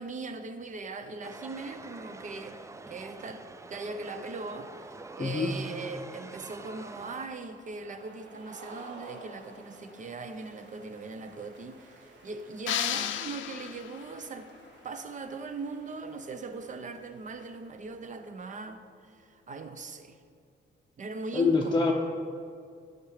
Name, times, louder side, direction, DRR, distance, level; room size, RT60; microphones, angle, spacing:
voice 1, 0.0-14.5 14.8-20.2 21.0-21.9, right 3 dB, 40° right, 9 dB, 0.7 m, -40 dB
sound 1, 1.2-7.3, right 3 dB, 15° right, 0.4 m, -46 dB
sound 2, 3.1-18.7, right 2 dB, 65° right, 1.5 m, -54 dB
voice 2, 5.2-5.6 21.3-21.9, left 4 dB, 25° left, -1 dB, 0.7 m, -25 dB
sound 3, 12.7-14.2, left 12 dB, 75° left, 0.5 m, -33 dB
9.9 x 5.9 x 5.0 m, 2.3 s
cardioid pair, 90°, 20 cm